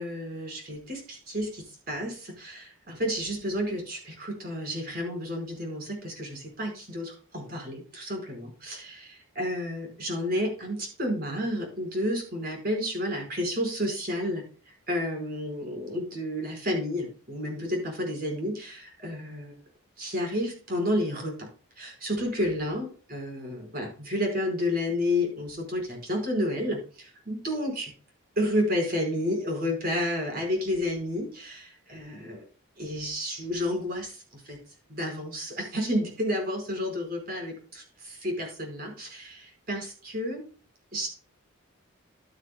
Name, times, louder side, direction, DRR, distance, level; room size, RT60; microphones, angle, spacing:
voice 1, 0.0-19.5 20.0-21.5 21.8-27.9 28.4-32.4 32.8-34.6 34.9-40.4 40.9-41.1, left 1 dB, 45° right, 2 dB, 4.8 m, -31 dB
12.0 x 9.8 x 2.2 m, 0.38 s
head